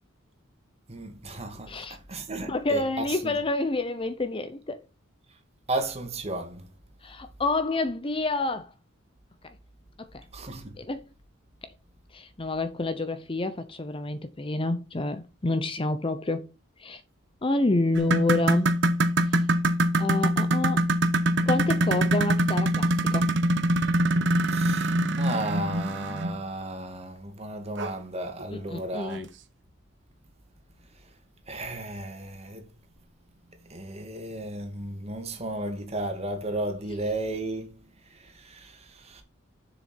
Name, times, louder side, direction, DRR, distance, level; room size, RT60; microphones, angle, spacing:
voice 1, 0.9-1.8 2.1-3.3 5.7-6.7 10.3-10.7 24.5-29.2 31.5-32.7 33.7-37.8 38.2-39.2, right 2 dB, 30° right, 2.1 m, -34 dB
voice 2, 1.7-2.0 2.5-4.8 7.0-8.7 10.0-10.2 10.8-11.0 12.1-16.5 16.8-17.0 17.4-18.8 19.3-19.4 20.0-20.8 21.4-23.3 28.5-29.3, left 2 dB, 25° left, 0.7 m, -28 dB
sound 1, 17.9-26.4 27.8-27.9 28.4-28.5 29.1-29.2, right 1 dB, 60° right, 1.0 m, -24 dB
7.4 x 6.9 x 4.3 m
head